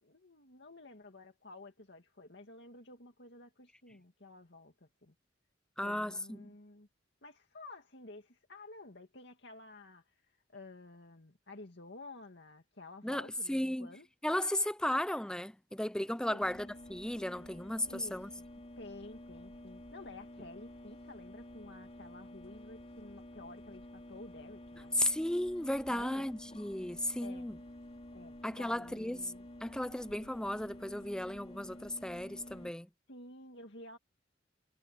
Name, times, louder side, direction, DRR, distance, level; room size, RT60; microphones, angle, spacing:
voice 1, 0.0-5.1 5.8-6.9 7.2-14.1 16.3-16.4 17.9-18.5 18.8-24.9 25.9-26.3 27.2-27.5 28.1-29.5 33.1-34.0, left 2 dB, 65° left, 2.3 m, -52 dB
voice 2, 5.8-6.5 13.0-13.9 14.2-18.3 24.9-27.6 28.4-29.2 29.6-32.9, left 1 dB, 5° left, 0.5 m, -35 dB
sound 1, 16.4-32.7, left 1 dB, 35° left, 3.3 m, -50 dB
head